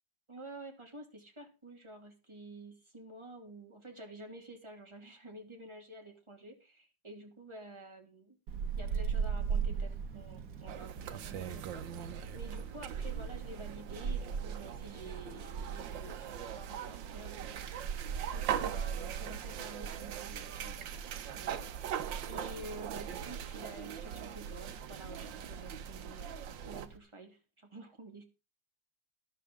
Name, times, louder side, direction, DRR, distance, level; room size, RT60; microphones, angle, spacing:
voice 1, 0.3-8.4 8.8-18.0 18.3-21.6 22.3-28.2, right 1 dB, 15° right, 2 dB, 2.7 m, -50 dB
Wind, 8.5-27.0, right 6 dB, 60° right, 1.8 m, -41 dB
sound 1, 10.7-26.9, right 9 dB, 85° right, 1.6 m, -41 dB
12.5 x 12.0 x 3.7 m, 0.30 s
omnidirectional pair, 2.0 m